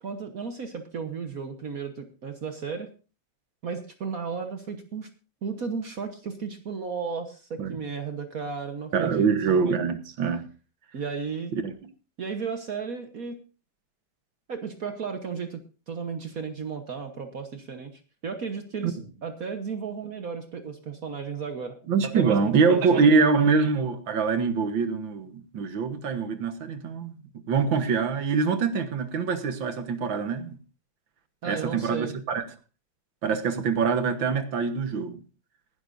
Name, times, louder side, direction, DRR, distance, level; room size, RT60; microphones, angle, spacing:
voice 1, 0.0-2.9 3.6-5.1 5.4-9.3 10.9-11.5 12.2-13.4 14.5-21.8 22.0-23.3 31.4-32.1, right 5 dB, 50° right, 1.5 m, -34 dB
voice 2, 8.9-10.4 11.5-11.7 18.8-18.9 21.9-27.1 27.5-30.6 31.4-32.4 33.2-35.2, right 5 dB, 80° right, 2.0 m, -24 dB
20.0 x 11.5 x 2.6 m
omnidirectional pair, 2.1 m